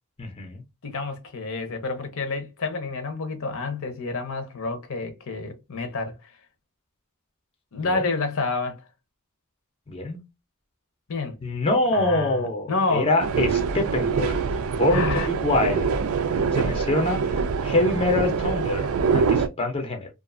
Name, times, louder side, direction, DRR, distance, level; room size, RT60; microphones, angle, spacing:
voice 1, 0.2-0.6 7.8-8.1 9.9-10.2 11.4-14.4 14.7-15.9 16.5-20.1, left 2 dB, 25° left, 0.5 m, -25 dB
voice 2, 0.8-6.3 7.7-8.8 11.1-11.4 11.9-13.1 14.9-15.3, left 3 dB, 65° left, 0.7 m, -29 dB
sound 1, 13.2-19.5, right 5 dB, 65° right, 0.4 m, -24 dB
2.4 x 2.4 x 2.4 m
head